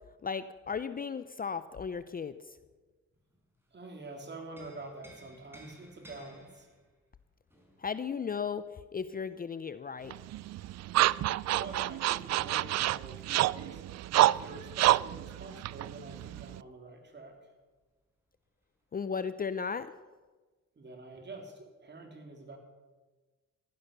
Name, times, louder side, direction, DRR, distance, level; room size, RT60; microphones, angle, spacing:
voice 1, 0.2-2.6 7.8-8.6 8.9-10.1 18.9-19.9, left 6 dB, 30° left, 13 dB, 0.6 m, -35 dB
sound 1, 3.2-3.9 4.3-9.8 11.7-17.5 17.8-17.9 18.2-19.0 19.7-19.9, right 1 dB, 10° right, 5.0 m, -59 dB
voice 2, 3.7-6.7 11.5-13.8 14.2-17.5 20.8-22.6, right 2 dB, 35° right, 3 dB, 3.6 m, -46 dB
sound 2, 10.1-16.6, right 14 dB, 60° right, 0.4 m, -28 dB
15.5 x 12.0 x 6.8 m, 1.3 s
cardioid pair, 90°, 30 cm